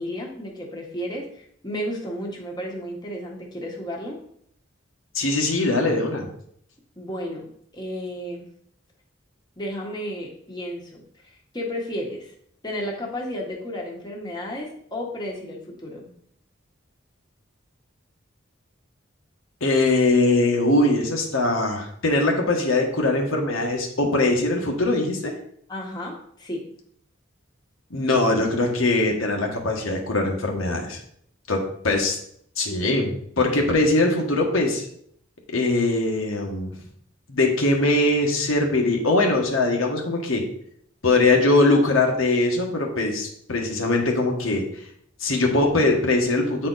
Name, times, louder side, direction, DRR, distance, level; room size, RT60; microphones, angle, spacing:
voice 1, 0.0-4.2 7.0-8.5 9.6-12.3 12.6-16.1 25.7-26.6, equal, 20° left, -1 dB, 1.3 m, -33 dB
voice 2, 5.1-6.3 19.6-25.3 27.9-31.0 31.5-32.2 32.6-34.9 35.5-36.7 37.3-40.4 41.0-44.6 45.2-46.7, left 2 dB, 90° left, 1 dB, 1.4 m, -21 dB
8.7 x 4.3 x 4.0 m, 0.66 s
head